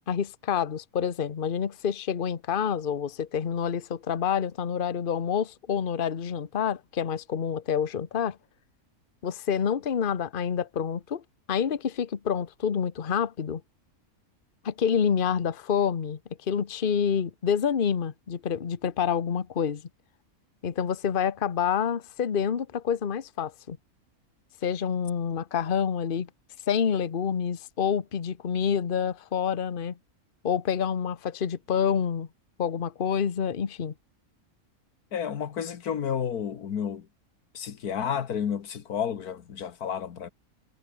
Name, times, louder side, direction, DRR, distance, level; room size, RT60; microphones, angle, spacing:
voice 1, 0.1-8.4 9.2-11.2 11.5-13.6 14.6-16.2 16.5-19.8 20.6-23.8 24.6-26.3 26.7-30.0 30.4-32.3 32.6-33.9, left 7 dB, 40° left, 1.1 m, -27 dB
voice 2, 35.1-37.1 37.5-40.3, left 8 dB, 85° left, 1.8 m, -31 dB
omnidirectional pair, 1.6 m